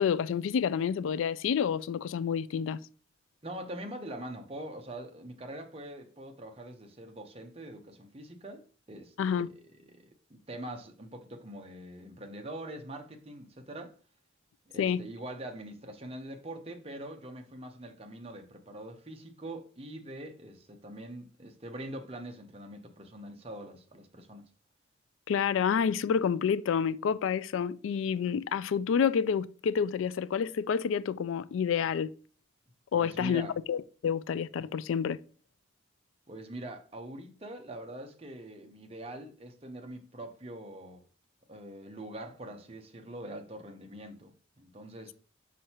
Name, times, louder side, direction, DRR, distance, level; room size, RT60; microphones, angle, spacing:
voice 1, 0.0-2.8 9.2-9.5 14.8-15.0 25.3-32.1 32.9-35.2, left 7 dB, 85° left, 0.3 m, -29 dB
voice 2, 3.4-9.5 9.9-13.9 14.7-24.5 32.9-33.5 36.3-41.0 41.5-45.1, right 1 dB, 30° right, 0.9 m, -43 dB
6.2 x 5.5 x 2.9 m
head